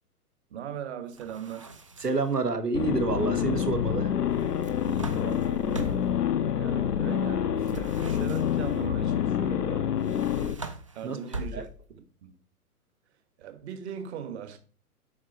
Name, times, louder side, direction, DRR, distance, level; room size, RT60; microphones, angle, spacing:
voice 1, 0.5-1.7 4.8-6.0 6.5-9.9 10.9-12.3 13.4-14.6, right 8 dB, 45° right, 1.4 m, -40 dB
sound 1, 1.1-2.4 4.4-6.2 7.6-8.8 10.0-12.0, right 2 dB, 25° right, 0.3 m, -41 dB
voice 2, 2.0-4.1 11.0-11.2 11.5-11.6, right 4 dB, 90° right, 1.4 m, -28 dB
sound 2, 2.7-10.5, left 9 dB, 90° left, 0.7 m, -27 dB
7.2 x 4.9 x 4.4 m
figure-of-eight pair, 115°, 46 cm